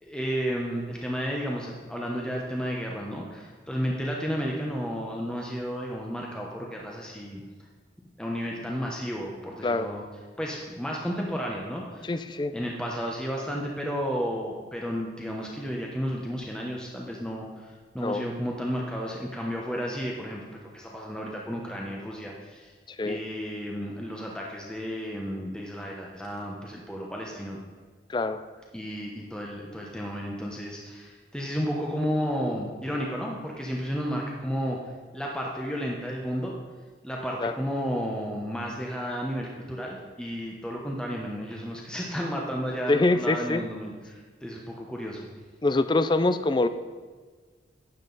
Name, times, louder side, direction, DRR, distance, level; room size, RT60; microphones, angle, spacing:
voice 1, 0.0-7.4 8.2-10.0 10.4-12.1 12.5-22.7 23.0-27.6 28.7-34.8 35.1-36.6 37.0-45.3, equal, 5° left, -2 dB, 0.9 m, -32 dB
voice 2, 12.0-12.5 18.0-18.3 23.0-23.2 28.1-28.4 37.4-37.5 42.9-43.6 45.6-46.7, left 2 dB, 25° left, 11 dB, 0.4 m, -24 dB
12.0 x 9.0 x 4.0 m, 1.5 s
head